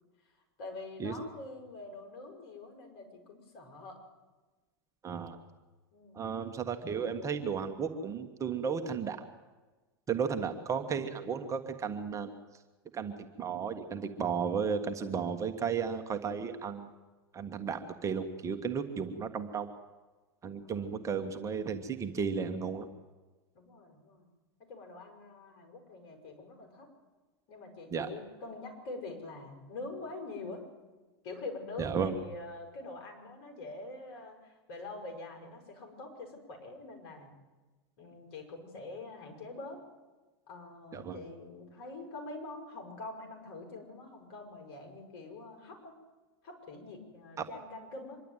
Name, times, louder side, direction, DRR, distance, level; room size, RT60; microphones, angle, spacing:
voice 1, 0.6-4.0 5.9-6.2 10.1-10.3 20.6-20.9 23.5-24.3 24.7-26.9 27.5-30.6 31.2-37.3 38.0-39.8 40.5-45.9 46.4-48.2, left 2 dB, 55° left, 3 dB, 6.3 m, -45 dB
voice 2, 5.0-5.4 6.1-9.2 10.1-12.3 12.9-16.9 17.3-19.7 20.4-22.9 27.9-28.1 31.8-32.1 40.9-41.2 47.4-47.5, right 6 dB, 25° right, 7 dB, 1.6 m, -34 dB
25.0 x 11.5 x 9.2 m, 1.2 s
hypercardioid pair, 110°, 13 cm